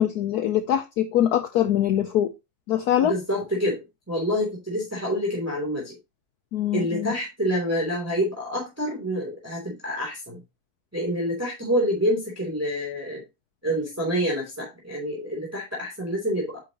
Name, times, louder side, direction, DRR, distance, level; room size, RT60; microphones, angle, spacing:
voice 1, 0.0-2.3 2.7-3.1 6.5-7.1, left 11 dB, 90° left, 0.8 m, -23 dB
voice 2, 3.0-6.0 6.7-10.4 10.9-13.2 13.6-16.6, equal, 5° right, 2.7 m, -27 dB
9.1 x 5.7 x 2.8 m
omnidirectional pair, 2.3 m